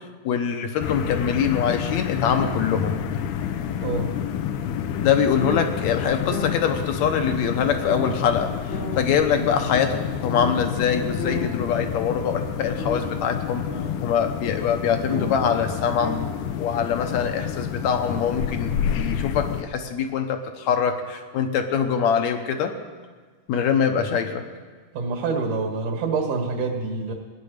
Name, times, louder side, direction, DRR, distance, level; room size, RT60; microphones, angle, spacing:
voice 1, 0.2-2.9 5.0-10.0 10.2-16.2 16.6-22.7 23.5-24.5, left 7 dB, 70° left, 6 dB, 2.1 m, -24 dB
sound 1, 0.8-19.6, left 9 dB, 90° left, 2.3 m, -29 dB
sound 2, 5.4-5.6 6.3-6.5 7.2-7.3 7.9-8.1 8.7-9.0 9.7-9.8 10.3-10.6 11.2-11.5 12.8-13.0 13.7-13.9 15.1-15.3 15.7-15.8 16.0-16.3, left 3 dB, 50° left, 0.7 m, -30 dB
voice 2, 24.9-27.1, right 4 dB, 75° right, 1 dB, 3.2 m, -26 dB
18.0 x 9.7 x 6.6 m, 1.5 s
omnidirectional pair, 3.6 m